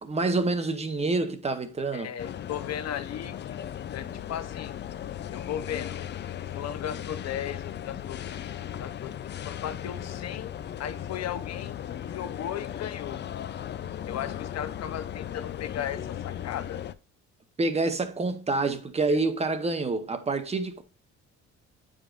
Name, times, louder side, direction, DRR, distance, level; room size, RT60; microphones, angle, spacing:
voice 1, 0.0-2.1 17.6-20.8, right 3 dB, 20° right, 0.9 m, -27 dB
voice 2, 1.9-3.6 3.9-4.7 5.3-6.0 6.5-8.5 8.8-9.1 9.4-10.5 10.8-13.2 14.1-16.8 19.1-19.2, left 10 dB, 60° left, 0.9 m, -36 dB
sound 1, 2.2-16.9, left 10 dB, 40° left, 0.4 m, -37 dB
9.0 x 5.1 x 2.5 m
cardioid pair, 135°, 30 cm